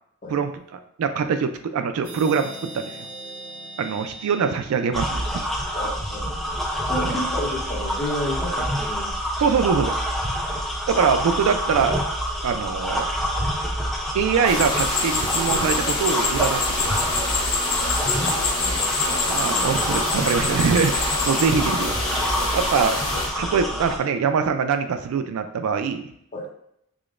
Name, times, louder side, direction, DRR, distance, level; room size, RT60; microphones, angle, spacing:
voice 1, 1.0-3.0 3.8-5.4 7.0-7.2 9.4-9.9 10.9-12.0 12.4-13.1 14.1-16.9 19.3-21.9 22.5-23.0 23.4-26.1, right 6 dB, 75° right, 9 dB, 0.3 m, -23 dB
sound 1, 2.0-5.6, right 2 dB, 45° right, 0.9 m, -40 dB
sound 2, 4.9-24.0, equal, ahead, 0.4 m, -27 dB
voice 2, 5.7-9.1 10.6-10.7 17.9-18.9 26.3-26.5, left 1 dB, 35° left, -3 dB, 0.9 m, -32 dB
sound 3, 14.4-23.3, left 3 dB, 70° left, 1.1 m, -25 dB
4.8 x 2.1 x 2.4 m, 0.74 s
head